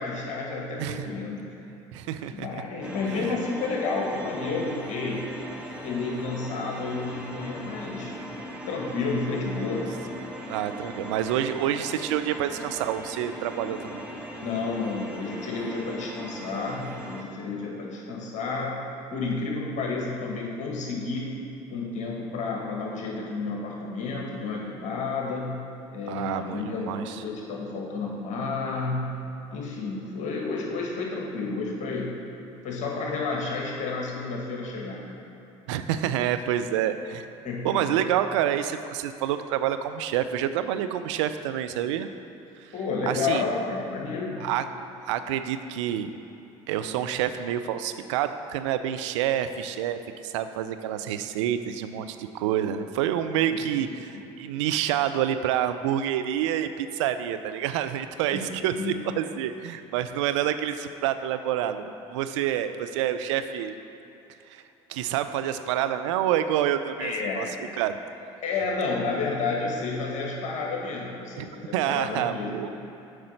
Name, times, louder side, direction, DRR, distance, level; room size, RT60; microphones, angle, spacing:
voice 1, 0.0-1.6 2.3-5.3 5.8-8.1 8.7-9.9 14.4-18.8 19.1-21.3 21.7-25.6 25.9-29.1 29.5-32.1 32.6-35.1 37.4-38.0 42.7-44.5 58.3-59.0 67.0-67.6 68.4-72.7, left 4 dB, 50° left, -2 dB, 1.9 m, -31 dB
voice 2, 0.8-1.1 1.9-2.6 3.1-3.3 10.5-14.0 26.1-27.2 35.7-37.3 37.6-42.1 42.6-42.7 43.1-43.4 44.4-44.7 45.0-46.1 46.7-63.7 64.5-64.6 64.9-67.5 67.8-68.0 71.4-72.7, right 10 dB, 80° right, 10 dB, 0.4 m, -28 dB
sound 1, 2.8-17.2, equal, 5° right, 1.1 m, -39 dB
7.8 x 5.0 x 5.7 m, 3.0 s
hypercardioid pair, 65°, 15 cm